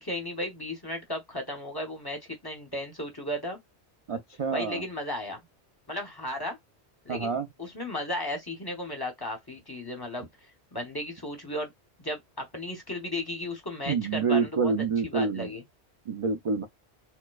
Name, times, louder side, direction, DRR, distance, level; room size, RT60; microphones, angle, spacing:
voice 1, 0.0-3.6 4.5-5.4 5.9-6.6 7.0-7.3 7.6-11.7 12.0-14.7 15.0-15.6, left 1 dB, 25° left, 0.8 m, -35 dB
voice 2, 4.1-4.8 7.1-7.5 13.8-15.5 16.1-16.7, right 5 dB, 55° right, 0.3 m, -27 dB
4.3 x 2.2 x 2.3 m
omnidirectional pair, 1.1 m